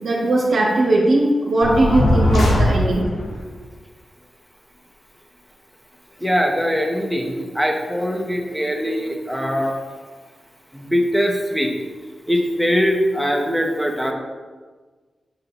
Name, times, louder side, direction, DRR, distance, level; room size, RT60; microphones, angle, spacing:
voice 1, 0.0-3.0, right 2 dB, 80° right, -4 dB, 1.4 m, -18 dB
sound 1, 1.6-3.3, left 1 dB, 80° left, 1.7 m, -18 dB
voice 2, 6.2-9.8 10.7-11.7 12.3-14.1, equal, ahead, 1 dB, 1.7 m, -21 dB
7.9 x 5.6 x 4.2 m, 1.4 s
cardioid pair, 45°, 0 cm